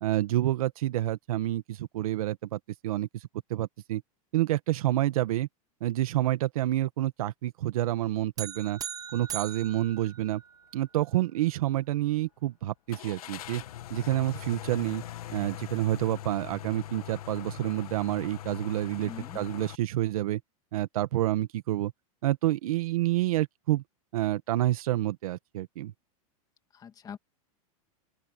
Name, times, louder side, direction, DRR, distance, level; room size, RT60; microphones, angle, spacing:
voice 1, 0.0-3.1 3.5-4.0 4.3-5.5 5.8-8.8 9.1-10.4 10.7-13.6 13.9-15.0 15.3-20.4 20.7-21.9 22.2-23.8 24.1-25.9, right 14 dB, 75° right, 1.6 m, -28 dB
sound 1, 8.4-10.8, right 9 dB, 20° right, 0.8 m, -40 dB
sound 2, 9.6-9.9 10.3-10.4 12.9-19.8, left 12 dB, 85° left, 1.6 m, -41 dB
voice 2, 19.0-19.4 26.7-27.2, left 7 dB, 20° left, 2.2 m, -43 dB
open air
supercardioid pair, 145°, 18 cm